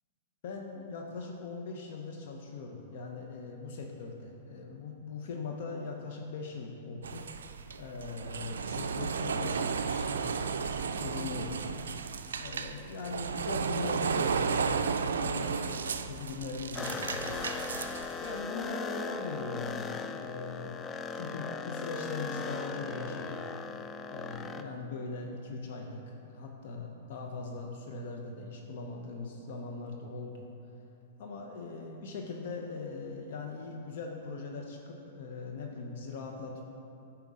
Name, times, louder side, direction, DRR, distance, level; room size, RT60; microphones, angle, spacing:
voice 1, 0.4-12.0 12.4-20.8 21.1-23.5 24.1-30.5 31.2-36.6, left 3 dB, 65° left, 1 dB, 0.6 m, -41 dB
sound 1, 7.0-18.4, right 5 dB, 85° right, 0.3 m, -33 dB
sound 2, 16.7-24.6, left 4 dB, 25° left, 0.3 m, -38 dB
9.0 x 4.5 x 3.7 m, 2.8 s
hypercardioid pair, 120°, 0 cm